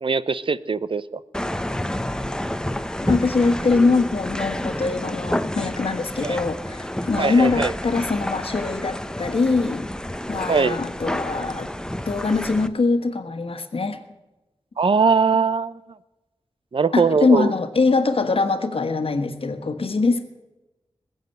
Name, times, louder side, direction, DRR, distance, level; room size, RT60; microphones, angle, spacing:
voice 1, 0.0-1.2 6.2-6.4 7.2-7.7 10.5-10.8 14.8-15.8 16.7-17.5, right 5 dB, 55° right, 16 dB, 0.7 m, -21 dB
sound 1, 1.3-12.7, left 1 dB, 5° left, 0.8 m, -29 dB
voice 2, 3.0-9.9 10.3-11.7 12.0-14.0 16.9-20.2, left 3 dB, 65° left, 8 dB, 1.5 m, -22 dB
20.5 x 8.0 x 8.0 m, 1.0 s
wide cardioid pair, 75°, 10 cm